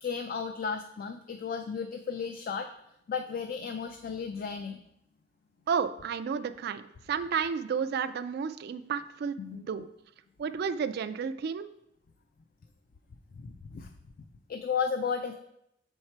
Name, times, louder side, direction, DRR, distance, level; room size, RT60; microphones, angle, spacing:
voice 1, 0.0-2.7 3.1-4.8 9.4-9.6 13.4-13.9 14.5-15.3, left 6 dB, 50° left, 7 dB, 0.4 m, -34 dB
voice 2, 5.7-9.9 10.4-11.7, right 6 dB, 60° right, 10 dB, 0.3 m, -32 dB
6.5 x 4.6 x 4.3 m, 0.80 s
head